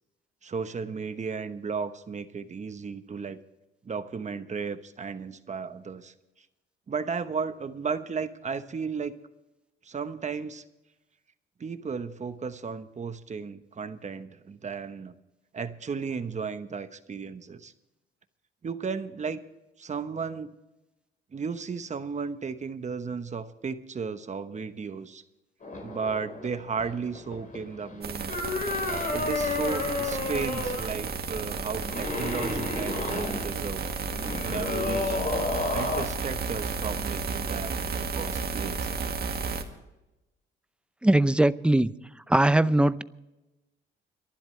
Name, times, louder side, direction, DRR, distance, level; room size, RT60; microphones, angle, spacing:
voice 1, 0.4-3.4 3.8-6.1 6.9-9.1 9.8-10.6 11.6-15.1 15.5-17.7 18.6-19.4 19.8-20.5 21.3-25.2 25.8-28.4 29.1-33.9 34.4-35.2 35.7-38.9, right 5 dB, 35° right, 10 dB, 1.1 m, -34 dB
sound 1, 25.6-36.0, left 3 dB, 40° left, 4.4 m, -32 dB
sound 2, 28.0-39.6, right 5 dB, 50° right, 2.0 m, -33 dB
voice 2, 41.0-41.9 42.3-43.0, right 1 dB, 5° right, 15 dB, 0.6 m, -20 dB
30.0 x 12.0 x 3.3 m, 1.0 s
cardioid pair, 90°, 20 cm